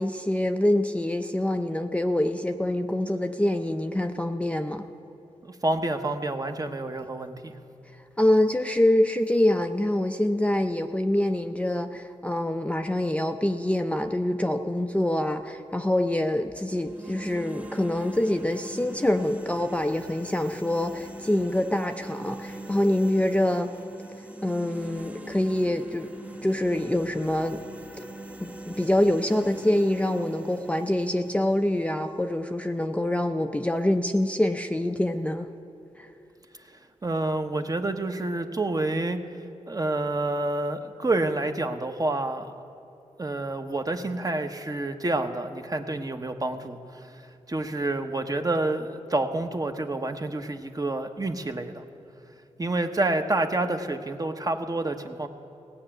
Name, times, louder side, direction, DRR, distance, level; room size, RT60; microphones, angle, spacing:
voice 1, 0.0-4.8 8.2-23.7 24.4-26.1 26.4-27.6 28.4-35.5 36.0-36.1, left 1 dB, 10° left, 6 dB, 0.5 m, -25 dB
voice 2, 5.4-7.6 37.0-39.2 39.7-42.5 43.2-47.2 47.5-51.8 52.6-55.3, right 2 dB, 30° right, 6 dB, 1.0 m, -28 dB
sound 1, 16.6-32.7, right 1 dB, 10° right, 0.9 m, -42 dB
17.0 x 5.9 x 8.8 m, 2.9 s
cardioid pair, 65°, 13 cm